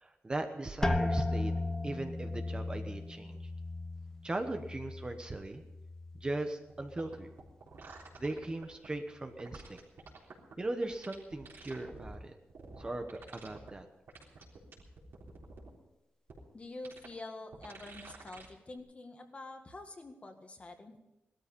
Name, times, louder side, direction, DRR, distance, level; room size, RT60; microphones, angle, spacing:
voice 1, 0.0-1.6 1.8-3.4 4.2-5.6 6.1-7.3 8.2-9.8 10.6-12.3 12.8-13.9, right 2 dB, 20° right, 6 dB, 1.1 m, -38 dB
sound 1, 0.8-6.5 6.8-7.5 8.0-8.4, left 2 dB, 15° left, 1.0 m, -36 dB
sound 2, 6.7-6.8 7.0-8.9 9.4-10.5 10.8-12.2 12.5-13.7 14.1-15.7 16.3-16.4 16.8-17.1 17.5-18.5 18.8-18.9, right 4 dB, 70° right, 3.7 m, -50 dB
voice 2, 16.5-21.0, left 2 dB, 30° left, 5 dB, 1.8 m, -47 dB
17.5 x 13.0 x 5.4 m, 0.96 s
wide cardioid pair, 135°, 4 cm